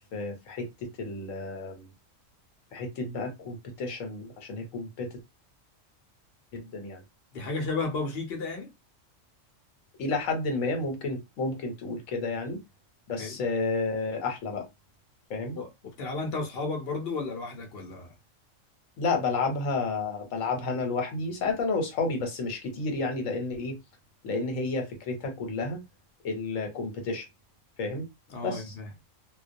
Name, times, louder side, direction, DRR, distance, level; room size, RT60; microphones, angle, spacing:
voice 1, 0.0-1.9 2.7-5.1 6.5-7.0 10.0-12.6 13.1-14.7 15.3-15.6 19.0-23.8 24.2-25.8 26.2-27.3 27.8-28.1 28.4-28.7, left 3 dB, 80° left, 1.1 m, -31 dB
voice 2, 7.3-8.7 13.2-13.4 15.5-18.1 28.3-28.9, left 3 dB, 55° left, 0.9 m, -33 dB
2.2 x 2.2 x 2.5 m
omnidirectional pair, 1.3 m